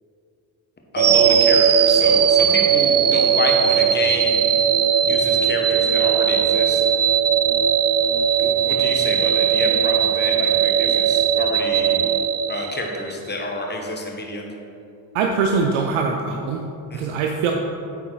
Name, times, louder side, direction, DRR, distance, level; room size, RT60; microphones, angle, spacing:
voice 1, 0.9-4.5 5.0-6.8 8.4-12.0 12.5-14.4 16.9-17.2, left 2 dB, 20° left, 1 dB, 1.2 m, -29 dB
sound 1, 1.0-13.1, right 8 dB, 30° right, 0.4 m, -18 dB
voice 2, 15.1-16.6 16.9-17.5, right 5 dB, 80° right, 2 dB, 0.7 m, -22 dB
8.6 x 4.1 x 4.6 m, 2.7 s
supercardioid pair, 75°, 50 cm